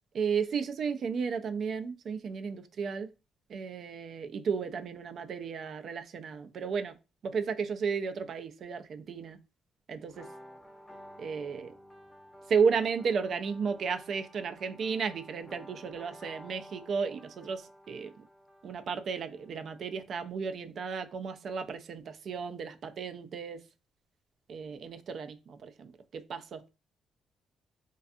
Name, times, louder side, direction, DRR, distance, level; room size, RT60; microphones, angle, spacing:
voice 1, 0.1-3.1 3.5-7.0 7.2-9.4 9.9-10.3 11.2-11.7 12.5-18.1 18.6-23.6 24.5-26.7, right 6 dB, 60° right, 0.3 m, -33 dB
sound 1, 10.1-19.7, equal, 20° left, 0.6 m, -53 dB
2.4 x 2.3 x 2.5 m
cardioid pair, 90°, 0 cm